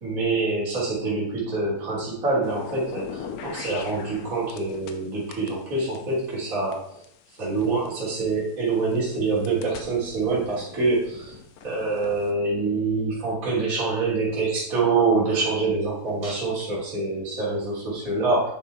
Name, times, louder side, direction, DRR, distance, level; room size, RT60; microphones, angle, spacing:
voice 1, 0.0-7.0 7.4-11.3 11.6-18.5, right 3 dB, 25° right, -7 dB, 3.0 m, -25 dB
sound 1, 2.4-5.0 5.3-8.2 8.8-12.3, left 7 dB, 70° left, 2.1 m, -41 dB
8.9 x 5.9 x 4.7 m, 0.68 s
omnidirectional pair, 4.2 m